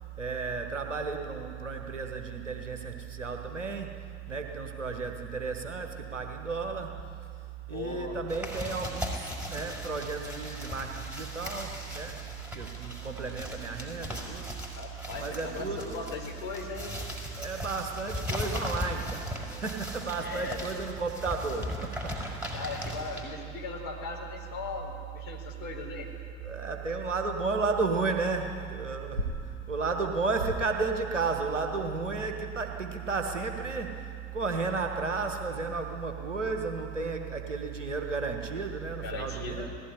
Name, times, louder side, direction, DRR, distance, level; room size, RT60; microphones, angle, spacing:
voice 1, 0.2-3.9 4.3-7.0 7.7-12.3 12.5-14.5 15.2-16.1 17.4-22.5 26.4-39.7, right 4 dB, 85° right, 4 dB, 1.5 m, -33 dB
voice 2, 7.7-8.2 14.8-16.9 20.2-20.6 22.5-26.1 39.0-39.7, left 4 dB, 60° left, 0 dB, 4.2 m, -38 dB
sound 1, 8.3-23.2, left 1 dB, 5° right, 5.3 m, -38 dB
19.0 x 15.5 x 9.9 m, 2.4 s
figure-of-eight pair, 55°, 36 cm